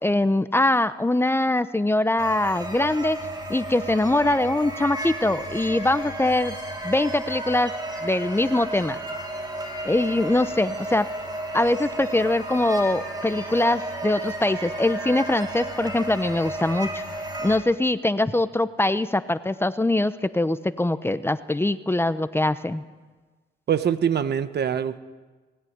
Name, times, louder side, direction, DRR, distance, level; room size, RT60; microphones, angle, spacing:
voice 1, 0.0-3.2 3.5-6.5 6.8-7.7 8.0-9.0 9.8-11.1 11.5-17.0 17.4-22.8, left 2 dB, 10° left, 12 dB, 0.9 m, -23 dB
sound 1, 2.2-17.6, right 1 dB, 20° right, 6.0 m, -33 dB
voice 2, 23.7-25.0, right 8 dB, 55° right, 11 dB, 1.3 m, -24 dB
20.0 x 17.5 x 9.5 m, 1.3 s
cardioid pair, 90°, 20 cm